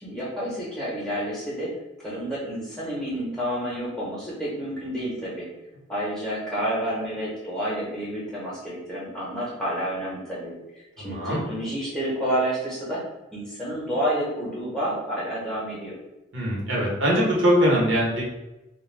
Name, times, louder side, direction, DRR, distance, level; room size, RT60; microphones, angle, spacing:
voice 1, 0.0-1.7 2.0-5.5 5.9-13.0 13.3-15.9, equal, 5° left, -7 dB, 0.8 m, -29 dB
voice 2, 11.0-11.4 16.3-18.2, equal, 80° right, -5 dB, 1.0 m, -22 dB
2.2 x 2.2 x 3.2 m, 0.99 s
head